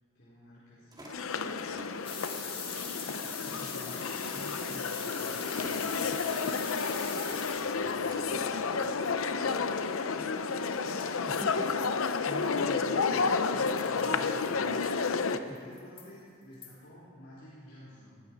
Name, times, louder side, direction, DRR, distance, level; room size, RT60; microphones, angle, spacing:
voice 1, 0.1-1.6 3.6-6.0 7.6-8.8 10.1-10.9 13.2-14.4 15.3-18.2, equal, 55° left, -9 dB, 4.3 m, -53 dB
sound 1, 0.9-8.3, right 1 dB, 20° right, 2.6 m, -51 dB
sound 2, 1.1-15.4, left 4 dB, 85° left, 0.7 m, -31 dB
sound 3, 2.0-7.9 10.7-10.8 11.0-11.1 11.6-11.7 11.9-12.0 12.4-12.6 14.0-14.3 14.8-14.9 15.5-16.0 16.6-16.7, left 5 dB, 25° left, 2.2 m, -41 dB
voice 2, 3.5-4.9 11.2-11.7 12.0-14.9 15.3-15.4, equal, ahead, 7 dB, 0.3 m, -46 dB
20.0 x 14.5 x 4.7 m, 2.2 s
head